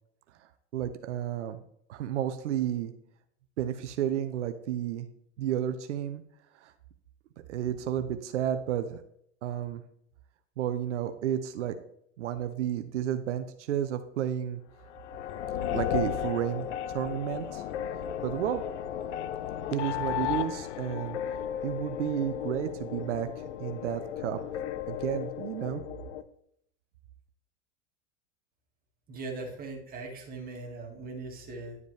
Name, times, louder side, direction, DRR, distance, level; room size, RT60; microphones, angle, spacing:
voice 1, 0.7-1.6 1.9-2.9 3.6-5.1 5.4-6.2 6.5-6.7 7.5-9.0 9.4-9.8 10.6-11.7 12.2-14.6 15.7-17.6 18.2-18.6 19.7-21.2 21.6-24.4 24.9-25.8, right 10 dB, 90° right, 9 dB, 0.7 m, -32 dB
sound 1, 14.9-26.2, left 10 dB, 80° left, 0.7 m, -34 dB
voice 2, 29.1-31.8, right 3 dB, 25° right, 0 dB, 2.1 m, -40 dB
11.0 x 5.1 x 3.3 m, 0.71 s
supercardioid pair, 125°, 35 cm